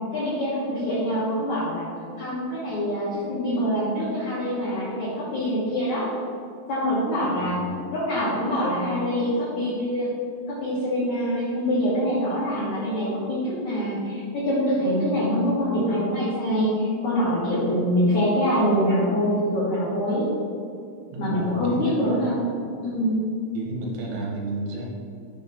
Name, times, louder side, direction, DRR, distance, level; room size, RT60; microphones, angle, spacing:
voice 1, 0.1-1.9 2.2-6.1 6.7-7.6 7.9-10.1 10.5-20.3 21.2-22.5 22.8-23.2, equal, 80° left, -9 dB, 1.7 m, -24 dB
voice 2, 7.4-7.9 21.1-22.3 23.5-24.9, right 2 dB, 85° right, -2 dB, 2.9 m, -32 dB
7.1 x 5.4 x 2.6 m, 2.4 s
omnidirectional pair, 5.0 m